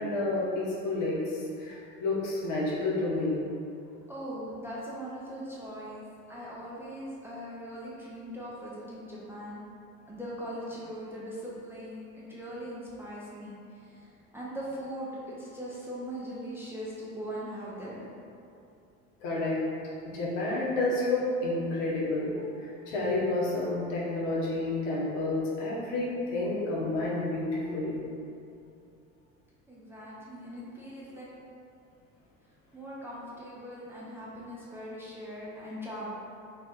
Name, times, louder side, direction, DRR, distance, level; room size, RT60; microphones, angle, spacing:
voice 1, 0.0-3.4 19.2-19.6 20.1-22.3 22.6-28.0, left 2 dB, 60° left, -5 dB, 0.8 m, -30 dB
voice 2, 4.1-9.6 10.1-18.1 29.7-31.3 32.7-36.1, equal, 5° right, -8 dB, 0.5 m, -40 dB
2.5 x 2.4 x 3.5 m, 2.6 s
figure-of-eight pair, 60°, 42 cm